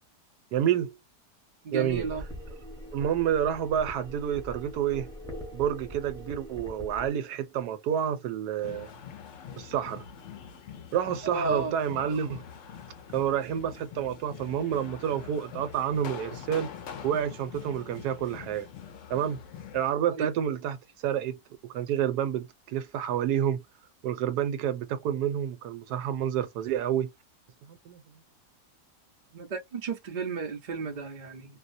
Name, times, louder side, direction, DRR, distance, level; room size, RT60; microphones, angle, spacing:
voice 1, 0.5-0.9 1.7-2.0 2.9-5.1 5.5-8.9 9.6-10.0 10.9-12.4 13.1-16.7 17.0-18.7 19.1-19.4 19.7-20.8 21.0-23.6 24.0-27.1 27.7-28.0, right 9 dB, 75° right, 1.1 m, -29 dB
voice 2, 1.6-2.2 11.2-11.7 20.1-20.3 29.3-31.6, right 4 dB, 55° right, 0.5 m, -33 dB
sound 1, 1.9-7.1, equal, 5° left, 0.6 m, -42 dB
sound 2, 8.6-19.9, left 7 dB, 65° left, 0.8 m, -44 dB
2.7 x 2.0 x 2.5 m
omnidirectional pair, 1.7 m